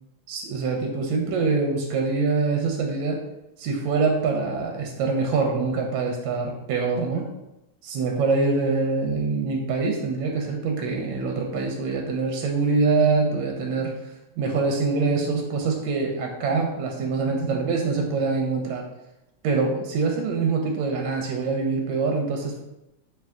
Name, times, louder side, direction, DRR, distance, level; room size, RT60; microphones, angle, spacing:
voice 1, 0.3-3.2 3.6-7.3 7.8-14.1 14.4-18.8 19.4-22.5, right 4 dB, 75° right, 1 dB, 1.2 m, -24 dB
3.4 x 2.6 x 3.5 m, 0.93 s
omnidirectional pair, 2.4 m